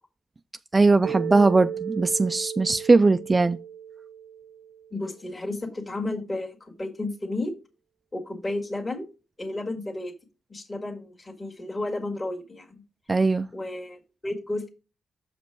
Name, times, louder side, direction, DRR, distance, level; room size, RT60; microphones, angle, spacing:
voice 1, 0.7-3.6 13.1-13.5, right 3 dB, 25° right, 0.3 m, -20 dB
Mallet percussion, 1.0-5.2, right 9 dB, 75° right, 0.7 m, -36 dB
voice 2, 4.9-7.5 8.1-9.1 9.4-10.1 10.5-12.8 13.5-14.7, left 2 dB, 30° left, 1.7 m, -32 dB
6.7 x 5.2 x 4.6 m
cardioid pair, 90°, 0 cm